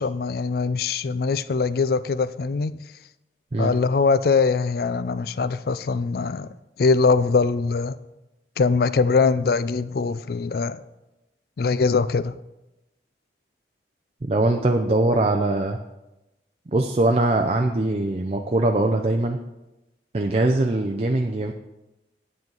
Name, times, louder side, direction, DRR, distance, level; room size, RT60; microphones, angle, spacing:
voice 1, 0.0-2.8 3.6-6.5 6.8-8.0 8.6-10.8 11.6-12.4, left 4 dB, 55° left, 0.4 m, -22 dB
voice 2, 14.3-15.8 16.7-19.4 20.1-21.5, right 2 dB, 35° right, 0.5 m, -22 dB
9.7 x 9.1 x 3.9 m
head